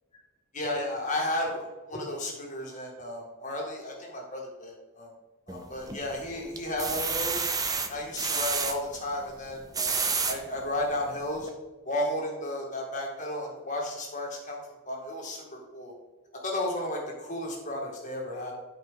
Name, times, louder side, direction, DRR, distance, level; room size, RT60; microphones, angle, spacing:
voice 1, 0.5-5.1 5.5-7.5 7.9-10.0 10.3-11.5 11.9-14.6 14.9-15.9 16.4-18.5, left 1 dB, 35° left, -1 dB, 2.0 m, -33 dB
sound 1, 5.5-6.1 6.6-8.7 9.5-10.4 11.0-11.1 11.4-11.5, right 5 dB, 15° right, 0.6 m, -29 dB
12.0 x 5.1 x 3.8 m, 1.2 s
head